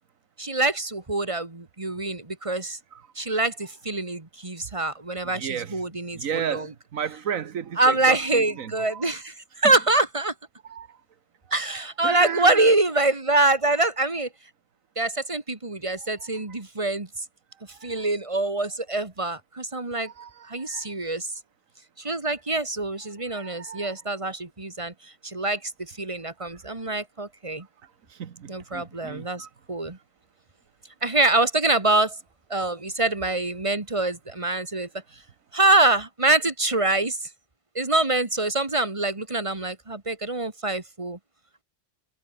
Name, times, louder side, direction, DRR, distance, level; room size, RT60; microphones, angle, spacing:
voice 1, 0.4-2.8 3.2-6.7 7.8-10.3 11.5-14.3 15.0-17.1 17.8-20.1 20.5-21.3 22.0-27.7 28.5-30.0 31.0-32.2 32.5-34.9 35.5-37.2 37.8-41.2, right 2 dB, 25° right, 1.9 m, -25 dB
voice 2, 5.2-5.8 6.1-9.1 10.6-10.9 12.0-12.7 16.2-16.3 17.8-18.0 19.9-20.9 23.3-24.0 28.1-29.5, right 8 dB, 85° right, 1.6 m, -34 dB
omnidirectional pair, 1.3 m